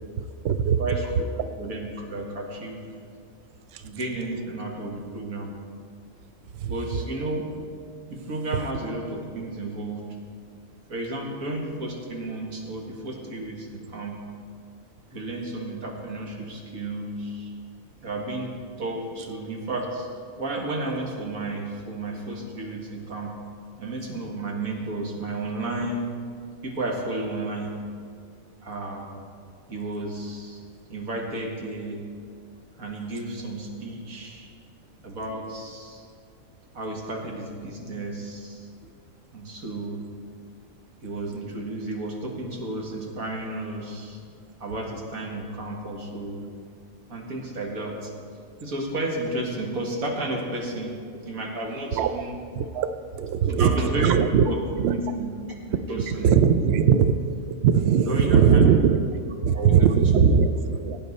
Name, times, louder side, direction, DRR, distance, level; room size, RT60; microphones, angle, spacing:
voice 1, 0.2-1.0 3.7-3.8 6.5-7.0 51.9-52.1 52.5-54.4 54.8-54.9 55.9-57.2 57.6-59.1 59.4-61.0, right 7 dB, 60° right, 10 dB, 0.7 m, -20 dB
voice 2, 0.8-1.3 1.6-2.9 3.8-5.5 6.6-7.5 8.1-10.1 10.9-14.2 15.1-17.5 18.0-20.1 20.4-23.4 23.8-26.1 26.6-27.7 28.6-29.1 29.7-30.6 30.9-32.0 32.8-34.5 35.0-36.0 36.7-38.7 39.3-40.0 41.0-44.2 44.6-46.4 47.1-48.1 48.6-52.4 53.5-54.1 54.5-55.3 55.7-56.3 56.9-57.0 58.1-58.8 59.5-59.9 60.2-60.5, right 2 dB, 80° right, 0 dB, 2.2 m, -32 dB
17.5 x 9.0 x 4.2 m, 2.2 s
omnidirectional pair, 1.5 m